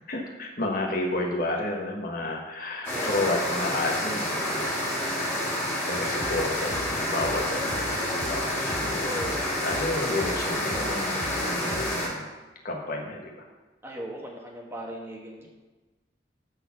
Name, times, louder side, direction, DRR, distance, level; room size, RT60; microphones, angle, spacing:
voice 1, 0.1-4.7 5.0-5.5 5.9-7.9 8.3-9.4 9.6-12.3 12.6-13.3, left 2 dB, 50° left, 0 dB, 1.5 m, -31 dB
sound 1, 2.8-12.1, left 1 dB, 15° left, 2.8 m, -29 dB
voice 2, 2.9-3.2 8.1-8.3 9.0-9.4 13.8-15.5, right 1 dB, 15° right, -1 dB, 1.4 m, -38 dB
sound 2, 5.9-12.0, left 1 dB, 85° left, 3.7 m, -40 dB
13.0 x 4.4 x 5.9 m, 1.2 s
head